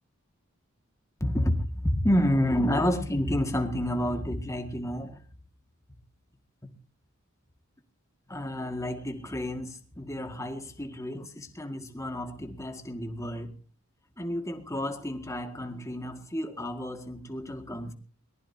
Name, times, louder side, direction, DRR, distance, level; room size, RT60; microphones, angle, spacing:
voice 1, 1.2-5.2 6.6-6.7 8.3-13.6 14.2-17.9, equal, 15° left, 2.0 m, -30 dB
22.5 x 19.5 x 2.8 m
head